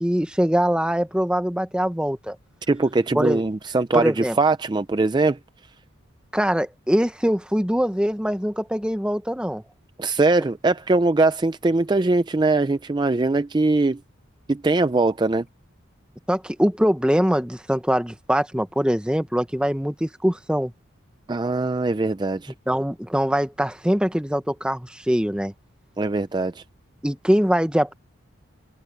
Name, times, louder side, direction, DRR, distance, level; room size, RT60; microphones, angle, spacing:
voice 1, 0.0-2.4 3.1-3.4 3.9-4.4 6.3-9.6 16.3-20.7 22.7-25.5 27.0-27.9, equal, 5° right, 1.0 m, -23 dB
voice 2, 2.7-5.4 10.0-14.0 14.5-15.4 21.3-22.5 26.0-26.6, right 3 dB, 20° right, 0.4 m, -21 dB
open air
head